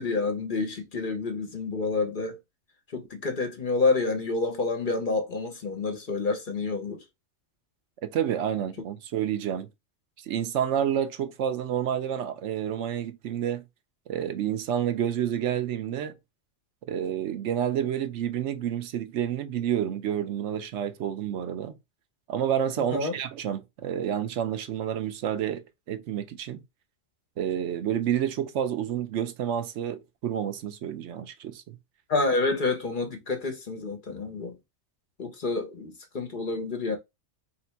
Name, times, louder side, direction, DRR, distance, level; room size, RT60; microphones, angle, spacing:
voice 1, 0.0-2.4 2.9-7.0 22.8-23.1 32.1-34.5 35.2-37.0, left 3 dB, 50° left, 0.9 m, -28 dB
voice 2, 8.0-9.7 10.3-13.6 14.1-16.2 16.9-21.8 22.3-26.6 27.4-31.8, right 9 dB, 75° right, 0.9 m, -29 dB
3.1 x 2.8 x 4.4 m
omnidirectional pair, 1.2 m